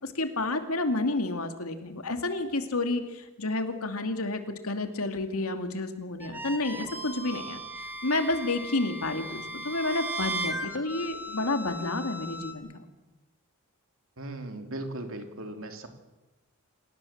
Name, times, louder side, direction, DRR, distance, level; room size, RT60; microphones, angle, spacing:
voice 1, 0.0-7.6 8.0-12.7, left 2 dB, 75° left, 7 dB, 2.5 m, -30 dB
sound 1, 6.2-12.5, right 1 dB, 10° right, 2.9 m, -37 dB
voice 2, 14.2-15.9, right 1 dB, 65° right, 5 dB, 3.0 m, -38 dB
27.0 x 18.0 x 7.3 m, 1.0 s
head